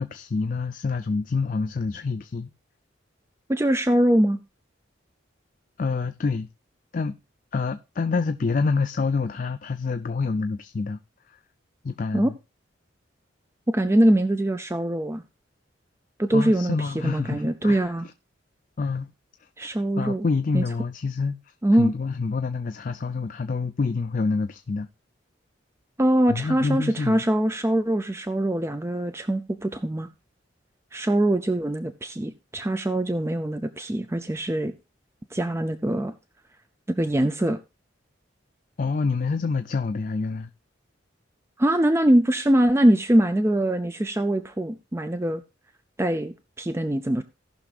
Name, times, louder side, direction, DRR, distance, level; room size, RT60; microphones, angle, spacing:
voice 1, 0.0-2.5 5.8-6.5 6.9-7.2 7.5-11.0 11.3-11.4 11.8-12.4 16.3-17.9 18.8-19.1 19.4-19.7 20.0-21.4 21.7-24.9 26.3-27.2 38.8-40.5, left 4 dB, 45° left, 0.4 m, -27 dB
voice 2, 3.5-4.4 12.1-12.3 13.7-15.2 16.2-18.1 19.6-20.2 20.5-20.6 21.6-21.9 26.0-30.1 30.9-34.7 35.3-36.1 36.9-37.6 41.6-45.4 46.0-47.2, right 1 dB, 15° right, 0.4 m, -23 dB
18.0 x 5.9 x 2.4 m
head